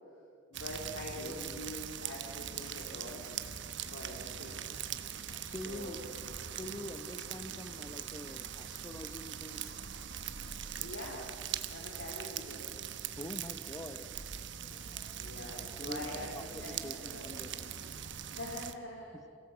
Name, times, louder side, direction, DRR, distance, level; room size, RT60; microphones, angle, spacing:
voice 1, 0.5-3.3 3.9-4.7 5.4-6.0 10.7-11.3 11.7-12.7 15.2-17.4 18.3-19.3, left 1 dB, 60° left, -2 dB, 3.5 m, -44 dB
sound 1, 0.5-18.7, right 9 dB, 60° right, 1.1 m, -42 dB
voice 2, 1.2-1.7 5.0-6.0 6.5-9.8 10.1-10.2 13.2-14.0 14.7-15.2 15.8-17.5 18.2-18.4, left 1 dB, 15° left, 10 dB, 1.0 m, -46 dB
28.0 x 17.0 x 8.1 m, 2.5 s
head